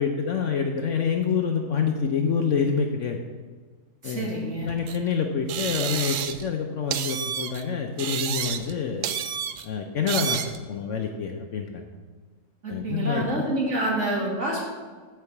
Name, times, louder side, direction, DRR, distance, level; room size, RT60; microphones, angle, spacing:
voice 1, 0.0-3.2 4.0-4.3 4.6-9.1 9.6-10.4 10.7-11.9 12.7-13.4, left 6 dB, 60° left, 4 dB, 0.9 m, -27 dB
voice 2, 4.0-4.7 12.6-14.7, right 1 dB, 50° right, -3 dB, 2.3 m, -27 dB
sound 1, 4.9-5.0 5.5-6.5 6.9-7.6 8.0-8.8 9.0-9.7 10.1-10.6, right 9 dB, 70° right, 0.8 m, -30 dB
7.9 x 4.7 x 7.2 m, 1.5 s
omnidirectional pair, 1.7 m